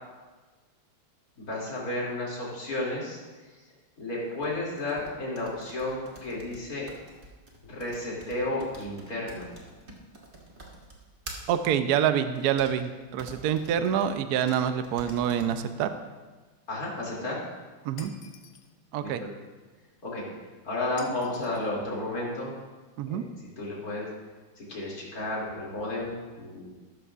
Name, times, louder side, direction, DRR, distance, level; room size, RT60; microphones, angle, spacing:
voice 1, 1.4-3.2 4.0-6.9 7.7-9.5 16.7-17.4 19.0-19.3 20.0-20.3 20.6-22.5 23.1-23.3 23.6-24.1 24.6-26.7, left 2 dB, 45° left, -5 dB, 3.3 m, -32 dB
sound 1, 4.4-11.6 12.3-12.7 13.2-14.1 14.5-14.6 14.8-15.6, right 2 dB, 30° right, 1.4 m, -47 dB
voice 2, 11.5-15.9 17.8-18.1 18.9-19.2 23.0-23.2, right 9 dB, 70° right, 9 dB, 0.9 m, -26 dB
Shatter, 18.0-18.7 21.0-21.7, left 6 dB, 60° left, 1.2 m, -49 dB
13.5 x 12.5 x 2.5 m, 1.3 s
omnidirectional pair, 2.3 m